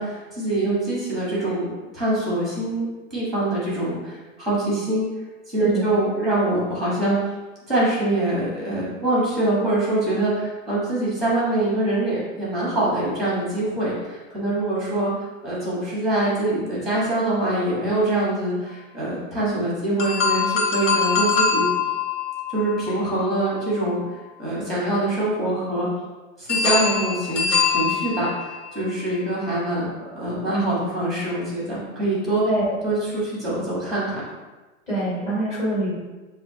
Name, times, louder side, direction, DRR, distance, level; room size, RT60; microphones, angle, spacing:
voice 1, 0.0-5.1 5.5-7.2 7.7-21.7 22.5-24.0 24.4-25.9 26.4-32.5 32.8-34.2, right 2 dB, ahead, -7 dB, 1.1 m, -24 dB
sound 1, 20.0-24.1 26.5-28.8, left 5 dB, 60° left, 1.2 m, -24 dB
voice 2, 32.4-32.8 34.9-36.0, right 1 dB, 15° left, -9 dB, 1.3 m, -24 dB
6.7 x 2.7 x 2.7 m, 1.2 s
hypercardioid pair, 160°, 41 cm